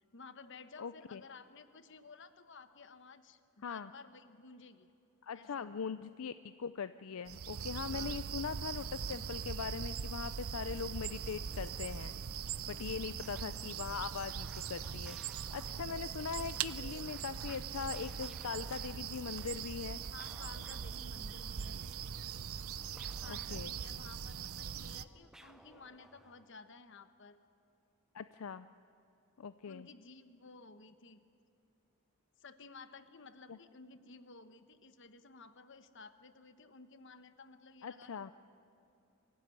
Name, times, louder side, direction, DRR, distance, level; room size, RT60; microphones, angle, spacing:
voice 1, 0.1-4.9 5.3-6.0 7.9-8.2 12.8-13.2 20.1-21.8 23.2-27.4 29.6-31.2 32.4-38.3, left 4 dB, 55° left, 11 dB, 1.1 m, -55 dB
voice 2, 0.8-1.2 3.6-3.9 5.2-12.1 12.7-20.0 23.3-23.8 28.1-28.7 29.4-29.9 33.5-33.6 37.8-38.3, left 6 dB, 75° left, 13 dB, 0.5 m, -41 dB
sound 1, 7.3-25.0, right 7 dB, 75° right, 0.6 m, -41 dB
sound 2, 10.9-26.6, right 1 dB, 5° right, 0.7 m, -61 dB
25.0 x 16.0 x 9.7 m, 2.7 s
head